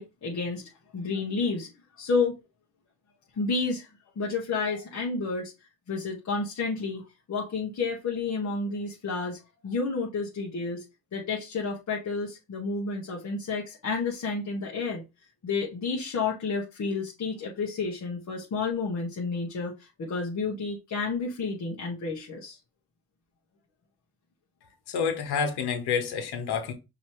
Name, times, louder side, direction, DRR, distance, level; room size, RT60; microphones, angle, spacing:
voice 1, 0.0-1.7 2.0-2.4 3.4-3.9 4.1-5.5 5.9-7.0 7.3-10.8 11.1-15.0 15.4-22.6, left 4 dB, 45° left, 1.4 m, -30 dB
voice 2, 24.9-26.7, left 6 dB, 80° left, 1.4 m, -28 dB
5.4 x 3.0 x 3.1 m
cardioid pair, 100°, 38 cm